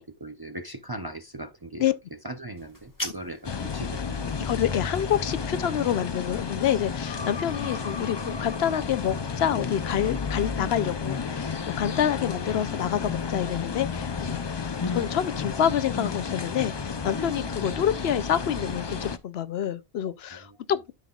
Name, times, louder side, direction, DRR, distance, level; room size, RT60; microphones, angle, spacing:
voice 1, 0.0-1.9 2.2-4.6 7.7-7.8 20.3-20.6, right 1 dB, 30° right, 0.5 m, -39 dB
sound 1, 2.6-3.6, left 1 dB, 20° left, 1.2 m, -37 dB
sound 2, 3.4-19.2, left 5 dB, 35° left, 0.5 m, -31 dB
voice 2, 4.4-20.9, left 9 dB, 75° left, 0.9 m, -27 dB
12.5 x 5.6 x 2.3 m
omnidirectional pair, 1.1 m